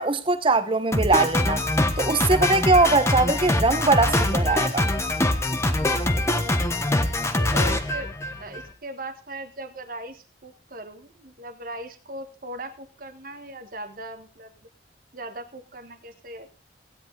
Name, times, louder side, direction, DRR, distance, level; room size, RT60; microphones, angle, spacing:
voice 1, 0.0-1.6 2.0-4.9, right 3 dB, 30° right, 1.1 m, -21 dB
Drum kit, 0.9-8.7, left 1 dB, 15° left, 1.2 m, -24 dB
voice 2, 5.8-6.8 7.5-14.7 15.1-16.5, right 1 dB, 50° right, 1.5 m, -39 dB
16.5 x 10.0 x 3.9 m
head